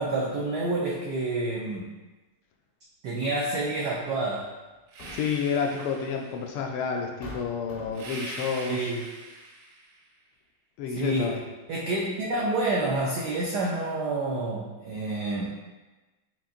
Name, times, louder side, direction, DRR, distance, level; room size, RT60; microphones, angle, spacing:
voice 1, 0.0-1.8 3.0-4.5 8.7-9.1 10.9-11.4 11.7-15.5, right 2 dB, 90° right, -4 dB, 0.9 m, -28 dB
sound 1, 4.7-5.5 6.5-6.6 7.2-8.2, left 1 dB, 65° left, 1.0 m, -44 dB
sound 2, 4.9-6.6 7.9-10.0, right 2 dB, 70° right, 1.4 m, -42 dB
voice 2, 5.1-8.9 10.8-11.4, left 6 dB, 80° left, 2 dB, 1.4 m, -30 dB
5.5 x 2.5 x 2.5 m, 1.2 s
omnidirectional pair, 2.3 m